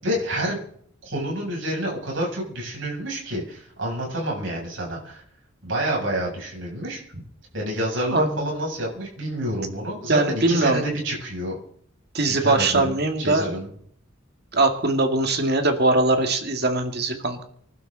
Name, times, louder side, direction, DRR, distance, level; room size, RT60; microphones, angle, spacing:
voice 1, 0.0-0.7 1.0-5.2 5.6-7.0 7.5-11.6 12.3-13.7, right 1 dB, 70° right, -2 dB, 7.4 m, -28 dB
voice 2, 8.1-8.4 10.1-10.8 12.1-13.5 14.5-17.4, right 2 dB, 55° right, 6 dB, 2.1 m, -21 dB
26.0 x 12.0 x 4.0 m, 0.65 s
head